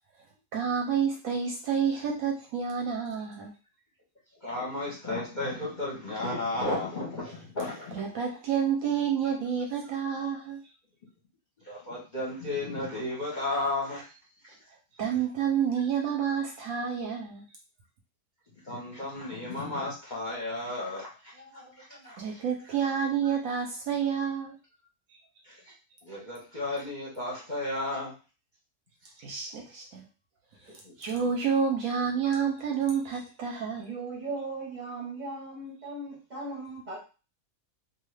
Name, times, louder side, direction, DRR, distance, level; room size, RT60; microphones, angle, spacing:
voice 1, 0.5-3.5 7.9-10.6 15.0-17.4 22.2-24.6 29.2-30.0 30.6-33.9, right 7 dB, 70° right, 0 dB, 0.9 m, -29 dB
voice 2, 4.4-8.0 11.6-14.2 14.4-14.5 18.6-22.4 25.4-25.7 26.0-28.1 30.8-30.9, left 2 dB, 40° left, -5 dB, 0.7 m, -34 dB
voice 3, 33.8-37.0, right 3 dB, 35° right, -4 dB, 0.7 m, -38 dB
2.7 x 2.4 x 3.2 m, 0.33 s
omnidirectional pair, 1.7 m